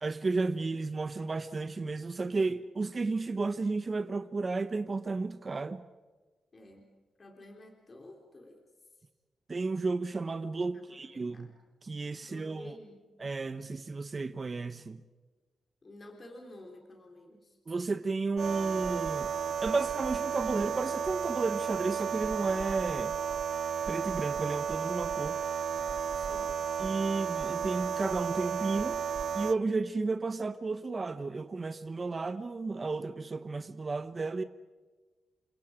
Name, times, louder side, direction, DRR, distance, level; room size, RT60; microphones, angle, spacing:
voice 1, 0.0-5.8 9.5-11.5 11.8-12.8 13.2-15.0 17.7-19.3 19.6-23.1 23.9-25.4 26.8-29.0 29.3-34.4, right 3 dB, 30° right, 1.0 m, -33 dB
voice 2, 6.5-6.9 7.2-8.6 10.7-11.5 12.2-13.0 15.8-17.6 26.2-26.5, left 1 dB, 30° left, 3.7 m, -51 dB
sound 1, 18.4-29.5, right 7 dB, 55° right, 0.7 m, -33 dB
30.0 x 27.0 x 5.1 m
wide cardioid pair, 130°, 0 cm